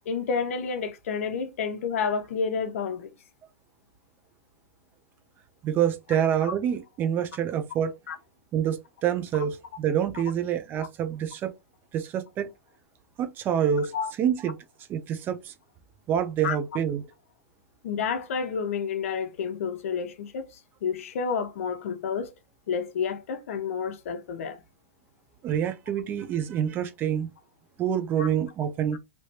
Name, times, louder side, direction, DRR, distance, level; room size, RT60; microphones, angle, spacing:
voice 1, 0.1-3.1 8.1-8.2 13.9-14.1 16.4-16.6 17.8-20.5 20.8-22.3 22.7-24.6 28.2-28.3, left 6 dB, 70° left, 0.8 m, -30 dB
voice 2, 5.6-7.9 8.5-11.5 11.9-12.5 13.2-14.6 14.9-15.5 16.1-17.0 25.4-27.3 27.8-29.0, right 9 dB, 25° right, 0.6 m, -27 dB
3.3 x 3.0 x 2.8 m
hypercardioid pair, 140°, 8 cm